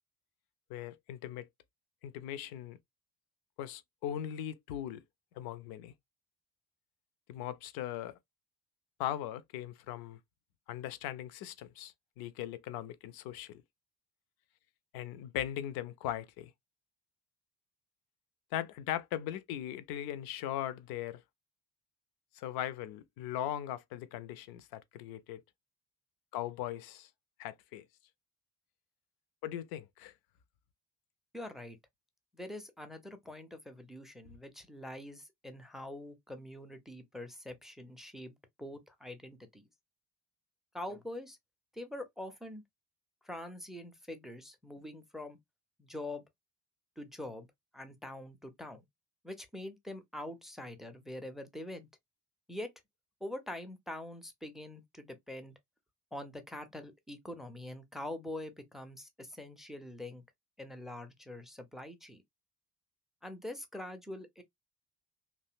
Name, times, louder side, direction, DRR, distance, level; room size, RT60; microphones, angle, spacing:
voice 1, 0.7-1.5 2.0-2.8 3.6-5.0 5.4-5.9 7.3-8.2 9.0-10.2 10.7-13.6 14.9-16.5 18.5-21.2 22.3-25.4 26.3-27.1 27.4-27.8 29.4-30.1, left 11 dB, 55° left, 0.5 m, -39 dB
voice 2, 31.3-31.8 32.3-39.6 40.7-41.4 41.7-42.6 43.2-45.4 45.8-46.3 47.0-47.5 47.7-48.8 49.2-51.9 52.5-52.7 53.2-55.5 56.1-60.2 60.6-62.2 63.2-64.4, left 1 dB, ahead, 0.4 m, -44 dB
2.7 x 2.1 x 2.3 m
figure-of-eight pair, 45°, 45 cm